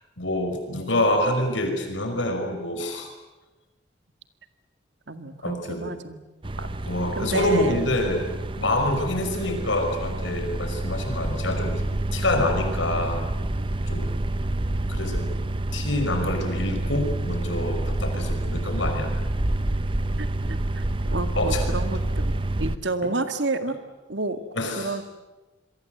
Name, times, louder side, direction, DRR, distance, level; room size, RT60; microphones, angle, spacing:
voice 1, 0.2-3.1 5.4-5.9 6.9-8.3 8.6-11.8 12.1-13.2 13.9-14.2 14.9-15.3 15.7-19.1 21.4-21.7 23.0-23.1 24.5-25.0, left 1 dB, 80° left, 5 dB, 5.7 m, -26 dB
voice 2, 5.1-6.2 6.6-6.7 7.2-7.8 20.2-20.9 21.1-23.8 24.1-24.4 24.8-25.0, right 2 dB, 70° right, 8 dB, 2.0 m, -30 dB
sound 1, 6.4-22.8, right 1 dB, 25° right, 0.8 m, -28 dB
27.0 x 22.5 x 8.0 m, 1.1 s
head